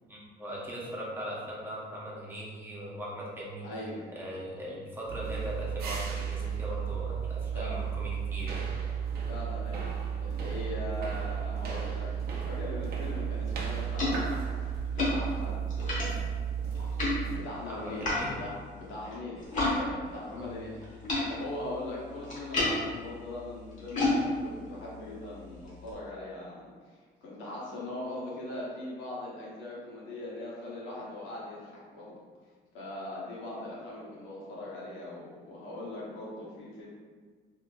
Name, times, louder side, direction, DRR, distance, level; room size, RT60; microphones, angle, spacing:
voice 1, 0.1-3.6 4.1-8.7 17.7-18.3 20.3-20.5, equal, 10° right, -6 dB, 0.9 m, -39 dB
voice 2, 3.6-4.0 7.5-7.8 9.3-9.9 10.2-16.2 17.3-20.8 21.2-32.1 32.7-36.9, left 1 dB, 85° left, -5 dB, 1.2 m, -40 dB
sound 1, 5.1-17.4, right 7 dB, 55° right, 0.6 m, -33 dB
sound 2, 13.3-19.8 20.0-25.9, left 2 dB, 45° left, 1.3 m, -34 dB
4.3 x 2.8 x 2.4 m, 1.5 s
cardioid pair, 125°, 19 cm